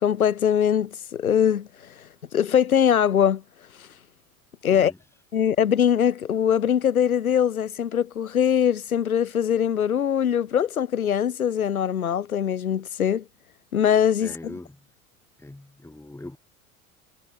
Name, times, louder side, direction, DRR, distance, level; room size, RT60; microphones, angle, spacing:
voice 1, 0.0-3.4 3.8-3.9 4.6-4.9 5.3-13.2 13.7-14.3, left 9 dB, 85° left, 1.2 m, -22 dB
voice 2, 14.2-14.9 15.4-16.4, left 2 dB, 5° left, 5.6 m, -41 dB
figure-of-eight pair, 80°, 42 cm